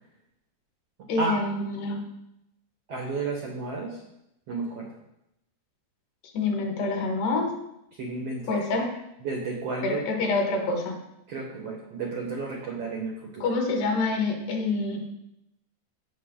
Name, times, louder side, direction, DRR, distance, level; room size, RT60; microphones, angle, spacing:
voice 1, 1.1-2.0 6.3-7.5 8.5-8.9 9.8-11.0 13.4-15.1, left 3 dB, 70° left, 2 dB, 3.6 m, -26 dB
voice 2, 2.9-4.0 4.5-4.9 8.0-8.5 9.2-10.1 11.3-13.4, right 3 dB, 80° right, 0 dB, 1.4 m, -32 dB
16.5 x 5.9 x 3.8 m, 0.82 s
omnidirectional pair, 5.0 m